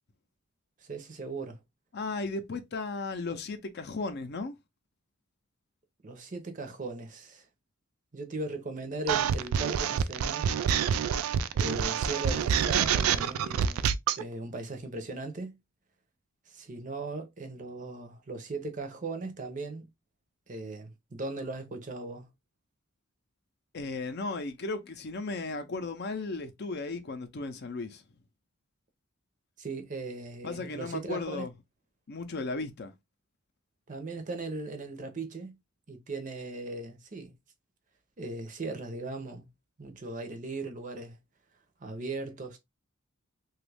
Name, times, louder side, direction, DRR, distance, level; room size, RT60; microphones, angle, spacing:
voice 1, 0.8-1.6 6.0-7.5 8.1-10.6 11.5-15.6 16.5-19.9 20.5-22.3 29.6-31.5 33.9-35.6 35.9-37.3 38.2-39.5 39.8-41.2 41.8-42.6, right 3 dB, 35° right, 0.6 m, -38 dB
voice 2, 1.9-4.5 23.7-28.0 30.4-31.5 32.1-32.9, left 3 dB, 50° left, 0.5 m, -35 dB
sound 1, 9.1-14.2, right 8 dB, 85° right, 0.3 m, -27 dB
3.0 x 2.3 x 3.2 m
head